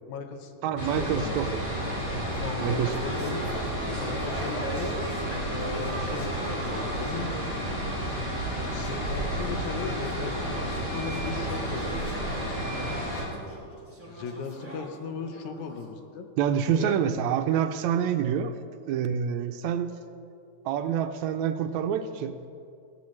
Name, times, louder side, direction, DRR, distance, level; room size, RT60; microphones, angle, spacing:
voice 1, 0.1-0.5 1.0-1.4 2.4-3.4 4.0-5.0 5.5-6.3 6.6-7.3 8.1-8.3 8.7-12.3 14.1-16.3 16.8-17.0, left 5 dB, 80° left, 6 dB, 2.3 m, -37 dB
voice 2, 0.6-1.6 2.1-2.3 2.6-2.9 16.4-18.5 18.9-19.9 20.7-22.4, right 8 dB, 80° right, 8 dB, 1.8 m, -27 dB
sound 1, 0.8-13.2, equal, 60° left, 4.4 m, -31 dB
sound 2, 1.8-7.5 8.7-15.9, right 2 dB, 5° right, 2.2 m, -39 dB
17.5 x 14.0 x 3.2 m, 2.5 s
omnidirectional pair, 3.4 m